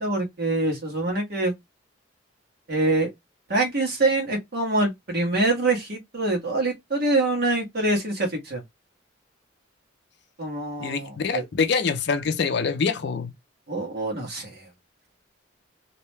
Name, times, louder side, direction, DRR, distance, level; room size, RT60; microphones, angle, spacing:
voice 1, 0.0-1.5 2.7-3.1 3.5-8.6 10.4-11.4 13.7-14.6, right 2 dB, 55° right, 1.2 m, -25 dB
voice 2, 10.8-13.3, left 5 dB, 60° left, 0.5 m, -25 dB
2.7 x 2.1 x 3.3 m
head